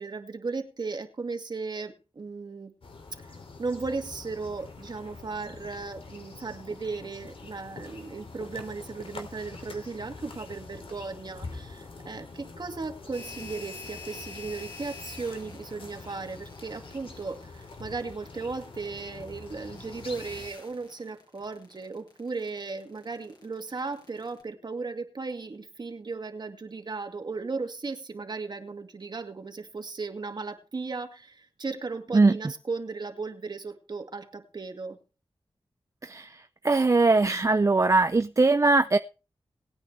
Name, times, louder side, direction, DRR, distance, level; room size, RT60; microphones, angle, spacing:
voice 1, 0.0-2.7 3.2-3.3 3.6-35.0, right 4 dB, 50° right, 5 dB, 2.2 m, -36 dB
sound 1, 2.8-20.5, left 3 dB, 75° left, 2.7 m, -45 dB
sound 2, 13.1-24.4, left 4 dB, 50° left, 6.3 m, -47 dB
voice 2, 36.0-39.0, right 3 dB, 35° right, 10 dB, 0.6 m, -21 dB
19.5 x 9.5 x 3.4 m, 0.33 s
wide cardioid pair, 95°, 9 cm